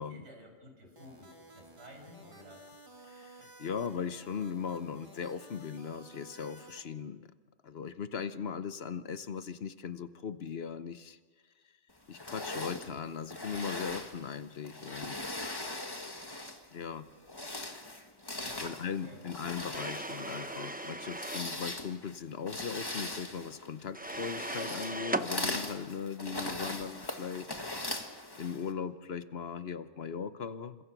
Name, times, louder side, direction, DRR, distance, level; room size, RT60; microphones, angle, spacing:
voice 1, 0.0-2.7 3.4-3.6 18.4-19.2, equal, 80° right, 2 dB, 6.1 m, -54 dB
sound 1, 1.0-6.8, right 1 dB, 25° right, 2.9 m, -54 dB
voice 2, 3.1-7.3 7.6-11.2 12.1-15.2 16.7-17.1 18.6-27.5 28.4-30.8, left 6 dB, 65° left, 12 dB, 1.1 m, -39 dB
sound 2, 12.1-16.7 17.2-28.7, left 2 dB, 20° left, 1.6 m, -40 dB
sound 3, 19.7-21.5 23.9-25.3, right 1 dB, 10° right, 0.7 m, -37 dB
29.0 x 26.0 x 6.1 m, 1.4 s
omnidirectional pair, 1.2 m